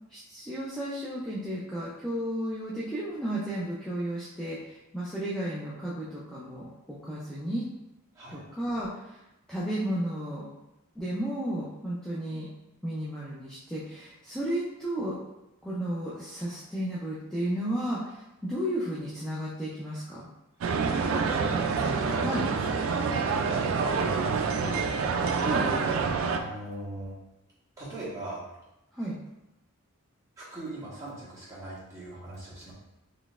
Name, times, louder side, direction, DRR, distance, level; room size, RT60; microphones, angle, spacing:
voice 1, 0.1-7.6 8.3-9.2 9.5-10.5 11.0-12.5 12.8-15.2 15.6-20.3 22.2-22.4 25.4-25.7 28.9-29.2, right 1 dB, 5° left, -9 dB, 0.4 m, -33 dB
sound 1, 20.6-26.4, right 5 dB, 65° right, 0.3 m, -27 dB
voice 2, 20.9-24.9 26.3-27.1 27.8-28.4 30.4-32.7, right 1 dB, 15° right, -10 dB, 1.3 m, -41 dB
3.9 x 3.2 x 2.4 m, 0.93 s
head